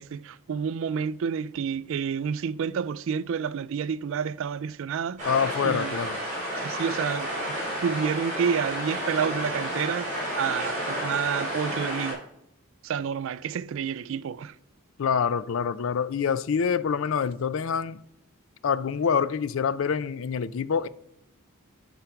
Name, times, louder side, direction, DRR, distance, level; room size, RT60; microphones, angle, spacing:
voice 1, 0.0-5.3 5.6-5.9 6.6-7.6 7.8-12.2 12.8-14.5, right 7 dB, 65° right, 0.3 m, -29 dB
voice 2, 5.2-6.2 15.0-18.0 18.6-20.9, left 6 dB, 65° left, 0.4 m, -26 dB
River stream creek sound of waves moving water, 5.2-12.1, equal, 35° right, 4.4 m, -31 dB
11.5 x 4.5 x 5.8 m
head